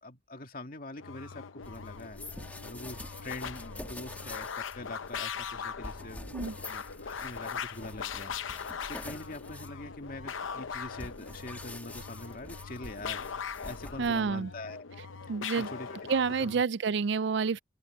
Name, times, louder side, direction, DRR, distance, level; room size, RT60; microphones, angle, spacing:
voice 1, 0.0-2.2 2.6-6.2 6.7-13.2 13.6-14.9 15.6-16.0 16.4-16.6, left 2 dB, 45° left, 2.4 m, -44 dB
sound 1, 1.0-16.6, left 6 dB, 80° left, 0.7 m, -41 dB
sound 2, 1.6-14.4, left 1 dB, 10° left, 1.5 m, -47 dB
voice 2, 14.0-14.5 15.3-15.7 16.1-17.6, right 5 dB, 60° right, 0.4 m, -28 dB
open air
head